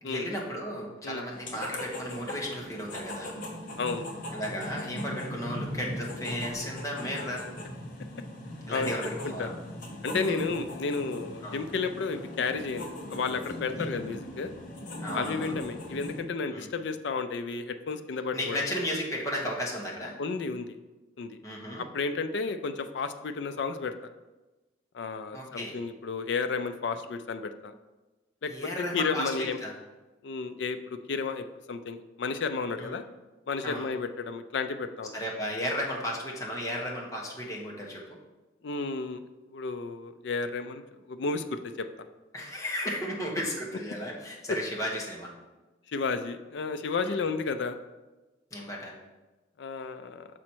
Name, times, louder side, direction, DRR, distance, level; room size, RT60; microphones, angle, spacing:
voice 1, 0.0-3.3 4.3-7.4 8.7-9.5 10.3-10.4 11.4-11.6 13.7-13.9 15.0-15.5 16.5-16.7 18.3-20.1 21.4-21.9 25.3-25.7 28.5-29.7 32.8-32.9 33.6-33.9 35.1-38.2 42.3-45.3 47.0-47.2 48.5-48.9, equal, 15° left, -2 dB, 1.1 m, -34 dB
sound 1, 1.3-16.2, left 1 dB, 45° left, 1.0 m, -39 dB
voice 2, 10.0-14.5 15.1-18.6 20.2-20.7 21.2-21.4 21.8-23.9 24.9-27.7 28.4-29.6 30.2-33.0 33.5-35.1 38.6-39.2 39.5-41.9 44.5-44.6 45.9-47.7 49.6-50.3, left 4 dB, 65° left, 8 dB, 0.4 m, -32 dB
6.2 x 4.2 x 4.5 m, 1.1 s
head